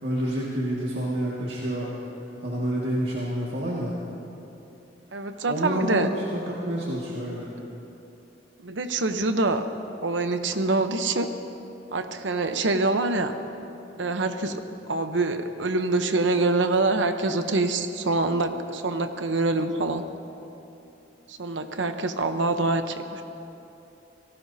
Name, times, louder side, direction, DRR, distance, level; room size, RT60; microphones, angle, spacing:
voice 1, 0.0-1.9 2.4-3.9 5.5-7.5, right 1 dB, 65° right, -6 dB, 2.0 m, -28 dB
voice 2, 5.1-6.1 8.6-9.6 10.0-11.3 11.9-13.3 14.0-14.6 14.9-20.0 21.3-23.2, right 2 dB, 85° right, 8 dB, 0.9 m, -25 dB
26.5 x 18.5 x 2.8 m, 2.9 s
head